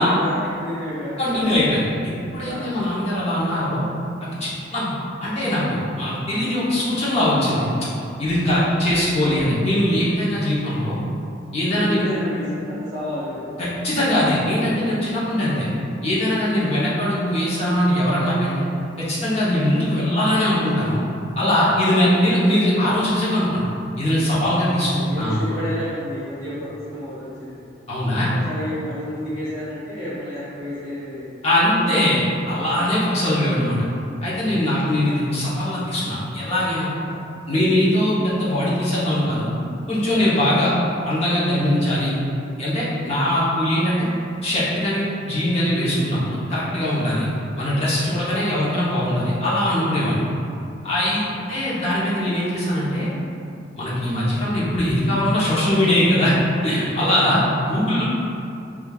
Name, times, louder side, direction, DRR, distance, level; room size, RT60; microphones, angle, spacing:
voice 1, 0.0-1.4 2.4-2.7 8.5-8.6 11.9-13.5 15.2-15.6 16.5-16.8 25.1-27.6 28.2-31.3 32.6-33.0 37.0-37.2 51.1-51.2 57.1-57.2, left 1 dB, 25° right, -15 dB, 1.4 m, -31 dB
voice 2, 1.2-3.8 4.2-4.9 5.2-7.6 8.2-11.0 11.5-12.0 13.6-15.7 16.0-18.5 19.0-21.0 21.4-23.6 24.0-25.4 27.9-28.3 31.4-33.8 34.2-36.9 37.5-39.5 39.9-40.7 41.0-42.1 42.6-44.1 44.4-47.3 47.6-50.2 50.8-53.1 53.8-56.3 56.6-58.0, left 1 dB, 35° left, -8 dB, 0.8 m, -21 dB
5.0 x 2.4 x 2.3 m, 2.6 s
head